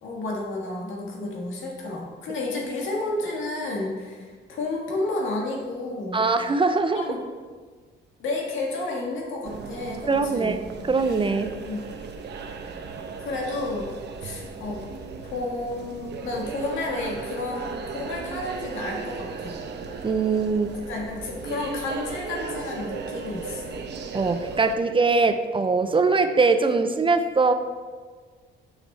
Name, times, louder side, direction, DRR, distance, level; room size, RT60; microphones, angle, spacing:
voice 1, 0.0-6.2 6.8-7.2 8.2-10.6 11.6-11.8 13.2-13.9 14.2-14.8 15.3-19.6 20.9-23.8, left 2 dB, 80° left, -1 dB, 1.7 m, -31 dB
voice 2, 6.1-7.0 10.1-10.6 10.9-11.5 20.0-20.7 24.1-27.5, right 4 dB, 25° right, 8 dB, 0.5 m, -22 dB
sound 1, 9.4-24.7, right 5 dB, 60° right, 0.8 m, -36 dB
6.6 x 6.1 x 4.0 m, 1.5 s
cardioid pair, 90°, 20 cm